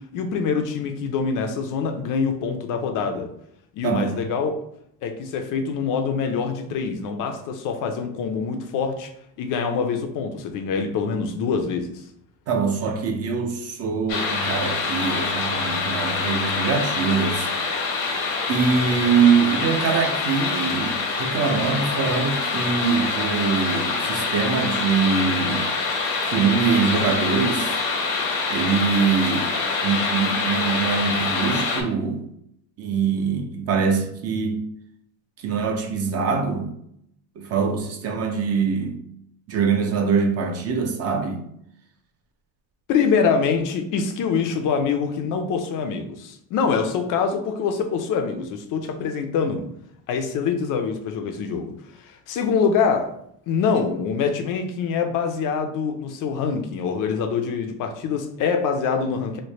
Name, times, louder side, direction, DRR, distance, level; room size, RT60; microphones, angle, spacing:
voice 1, 0.0-3.3 3.7-4.6 5.0-9.1 9.4-12.0 42.9-49.6 50.1-51.7 52.0-53.1 53.5-59.4, left 5 dB, 50° left, 6 dB, 0.5 m, -25 dB
voice 2, 3.8-4.2 12.5-17.5 18.5-25.7 26.2-27.8 28.5-29.5 29.8-32.2 32.8-34.6 35.4-36.7 37.4-39.0 39.5-41.4, right 5 dB, 35° right, 3 dB, 0.5 m, -23 dB
sound 1, 14.1-31.8, left 4 dB, 80° left, 1.0 m, -25 dB
3.2 x 2.1 x 4.0 m, 0.72 s
cardioid pair, 140°, 42 cm